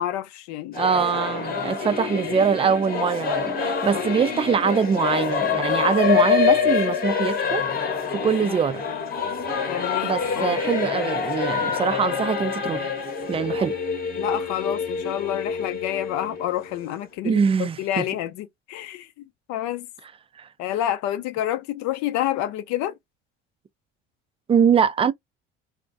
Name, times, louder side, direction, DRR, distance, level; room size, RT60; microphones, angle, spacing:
voice 1, 0.0-0.8 3.9-4.0 9.7-10.6 13.5-13.7 14.2-19.1 19.5-19.9 20.6-23.0, left 12 dB, 65° left, 0.6 m, -28 dB
Singing / Musical instrument, 0.7-17.0, left 6 dB, 30° left, 1.0 m, -26 dB
voice 2, 0.8-7.7 8.1-8.8 10.0-12.9 13.3-13.7 17.2-18.0 20.4-20.5 24.5-25.1, right 6 dB, 20° right, 0.4 m, -23 dB
2.3 x 2.1 x 2.5 m
hypercardioid pair, 65°, 30 cm